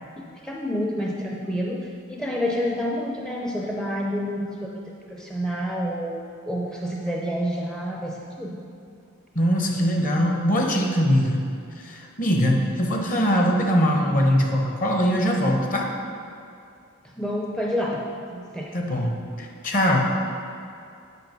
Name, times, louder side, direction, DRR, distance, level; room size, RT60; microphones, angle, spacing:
voice 1, 0.4-8.6 17.2-18.0 18.3-18.7, equal, 5° left, -2 dB, 0.5 m, -28 dB
voice 2, 9.3-11.5 11.8-15.9 18.7-20.1, equal, 40° left, 1 dB, 1.0 m, -22 dB
8.3 x 5.3 x 4.6 m, 2.5 s
head